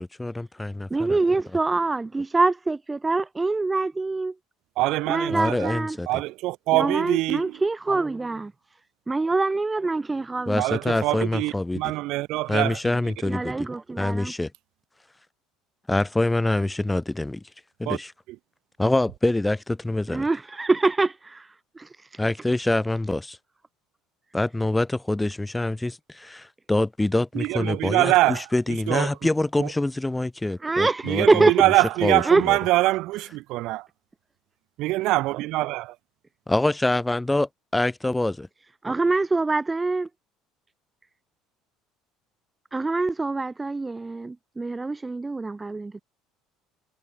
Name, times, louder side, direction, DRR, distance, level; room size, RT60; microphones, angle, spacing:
voice 1, 0.0-1.2 5.3-6.1 10.4-11.8 12.5-13.7 14.0-14.5 15.9-17.4 17.8-18.1 18.8-20.3 22.2-23.4 24.3-31.7 32.0-32.6 36.5-38.5, left 2 dB, 10° left, 1.6 m, -25 dB
voice 2, 0.9-4.3 5.1-6.0 6.7-8.5 9.1-10.6 13.3-14.3 20.1-21.5 21.8-22.2 30.6-31.6 32.3-32.4 38.8-40.1 42.7-46.0, right 3 dB, 15° right, 0.4 m, -24 dB
voice 3, 4.8-5.7 6.1-7.6 10.6-12.8 17.8-18.0 27.3-28.4 28.7-29.2 29.6-29.7 31.0-33.9 34.8-35.9, right 18 dB, 55° right, 1.0 m, -24 dB
figure-of-eight pair, 60°, 0 cm